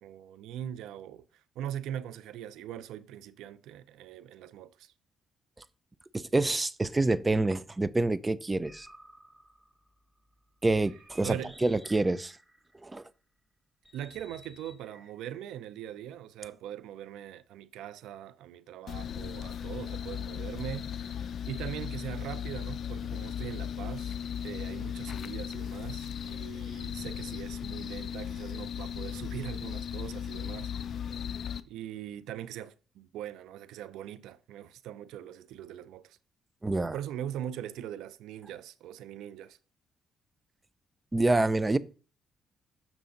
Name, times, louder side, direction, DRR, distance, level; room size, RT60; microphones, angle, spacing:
voice 1, 0.0-1.2 1.6-4.9 11.2-11.5 13.9-24.2 24.4-31.0 31.6-36.2 36.9-39.6, right 10 dB, 90° right, 0.4 m, -41 dB
voice 2, 6.1-8.9 10.6-12.4 12.8-13.0 36.6-37.0 41.1-41.8, right 2 dB, 20° right, 0.4 m, -27 dB
sound 1, 8.6-12.9 13.8-16.3, equal, 5° right, 1.2 m, -55 dB
sound 2, 18.9-31.6, left 8 dB, 60° left, 0.4 m, -37 dB
7.0 x 6.0 x 3.8 m
cardioid pair, 90°, 0 cm